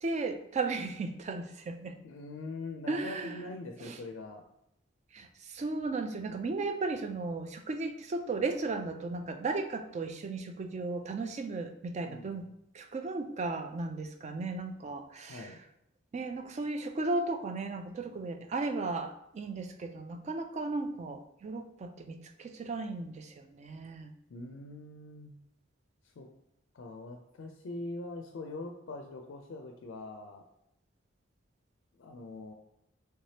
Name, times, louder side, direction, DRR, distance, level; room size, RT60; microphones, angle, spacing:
voice 1, 0.0-2.0 2.9-3.4 3.8-4.0 5.1-12.5 12.7-15.5 16.1-24.1, right 3 dB, 35° right, 7 dB, 0.3 m, -35 dB
voice 2, 2.0-4.4 12.0-12.5 15.3-15.6 24.3-25.3 26.2-26.3 26.7-30.4 32.0-32.5, left 2 dB, 70° left, 3 dB, 0.4 m, -43 dB
3.3 x 3.2 x 2.8 m, 0.79 s
head